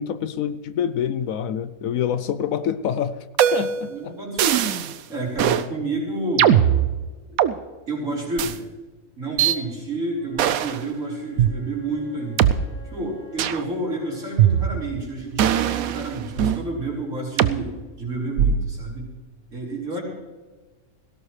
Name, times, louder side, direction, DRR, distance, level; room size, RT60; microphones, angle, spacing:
voice 1, 0.0-3.2 3.5-4.1, left 8 dB, 70° left, 13 dB, 1.0 m, -26 dB
sound 1, 3.4-3.9 4.4-4.9 5.4-5.7 6.4-7.5 8.4-8.5 9.4-9.6 10.4-10.8 11.4-11.5 12.4-12.5 13.4-13.6 14.4-15.0 15.4-16.6 17.4-17.6 18.4-18.8, right 10 dB, 75° right, 1.1 m, -20 dB
voice 2, 3.9-6.6 7.3-7.4 7.9-8.6 9.2-12.6 12.8-19.1 19.5-20.0, right 2 dB, 55° right, -5 dB, 5.1 m, -30 dB
Wind instrument woodwind instrument, 10.1-14.9, left 4 dB, 30° right, 3.4 m, -48 dB
18.5 x 17.0 x 3.3 m, 1.3 s
omnidirectional pair, 1.6 m